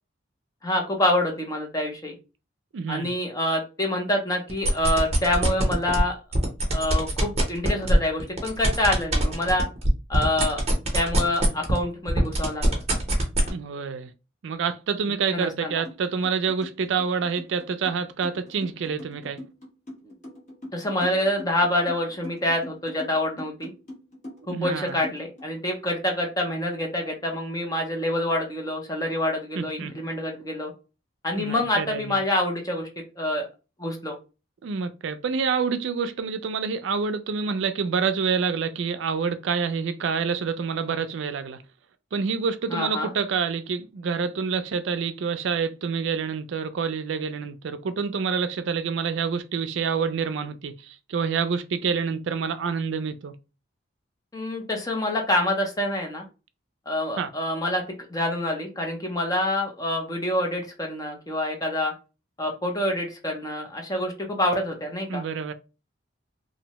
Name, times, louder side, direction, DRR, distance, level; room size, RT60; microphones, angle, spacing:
voice 1, 0.6-2.1 2.9-6.2 6.7-9.7 10.1-10.6 10.9-12.8 15.3-15.8 20.0-20.1 20.7-23.7 24.5-30.7 31.2-32.9 33.2-33.5 33.8-34.2 42.7-43.1 54.3-56.2 56.9-57.8 58.1-61.9 62.4-65.2, left 1 dB, 20° left, 0.5 m, -26 dB
voice 2, 2.7-3.1 13.5-14.1 14.4-19.4 24.5-25.0 29.6-29.9 31.3-32.2 34.6-41.6 42.1-53.3 57.2-57.3 65.1-65.5, right 5 dB, 70° right, 0.4 m, -27 dB
sound 1, 4.5-6.0 6.3-11.8 12.1-13.5, right 1 dB, 35° right, 0.7 m, -23 dB
sound 2, 15.9-16.0 16.2-25.4, left 1 dB, 40° left, 0.9 m, -41 dB
2.6 x 2.0 x 2.8 m
head